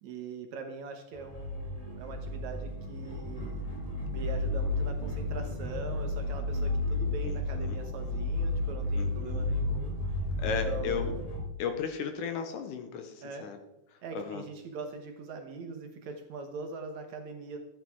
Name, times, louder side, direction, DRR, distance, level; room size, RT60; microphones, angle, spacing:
voice 1, 0.0-3.6 4.1-10.0 10.4-11.2 13.2-13.5 14.0-17.6, right 4 dB, 65° right, 4 dB, 2.0 m, -42 dB
sound 1, 1.1-11.4, left 2 dB, 25° left, 0.7 m, -32 dB
voice 2, 7.2-7.8 9.0-9.5 10.4-11.1 11.6-13.6 13.9-14.4, left 7 dB, 70° left, 7 dB, 2.2 m, -35 dB
12.5 x 9.4 x 4.5 m, 0.94 s
omnidirectional pair, 4.1 m